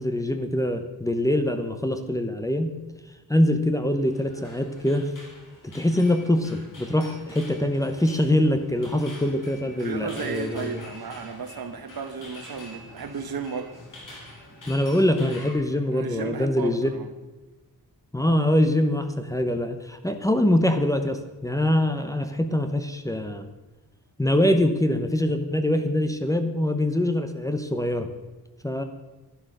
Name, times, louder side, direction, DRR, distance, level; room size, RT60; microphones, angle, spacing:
voice 1, 0.0-2.7 3.3-5.1 5.6-10.8 14.7-16.9 18.1-23.4 24.2-28.1 28.6-28.8, left 1 dB, 10° left, 7 dB, 0.9 m, -24 dB
sound 1, 4.0-15.5, left 1 dB, 55° left, 4.1 m, -46 dB
voice 2, 9.8-13.8 15.9-17.1, right 5 dB, 75° right, 8 dB, 1.4 m, -34 dB
11.5 x 11.5 x 6.6 m, 1.1 s
wide cardioid pair, 175°, 36 cm